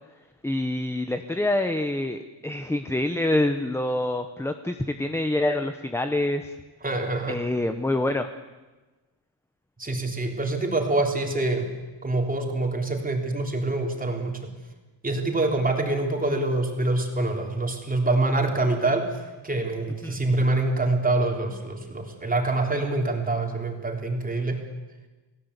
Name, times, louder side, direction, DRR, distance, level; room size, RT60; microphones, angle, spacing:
voice 1, 0.4-6.5 7.3-8.3 20.0-20.2, left 1 dB, 5° left, 8 dB, 0.9 m, -26 dB
voice 2, 6.8-7.4 9.8-11.7 12.0-14.5 15.0-19.1 19.4-24.6, right 2 dB, 20° right, 2 dB, 3.6 m, -25 dB
29.0 x 18.0 x 8.2 m, 1.2 s
wide cardioid pair, 155°, 47 cm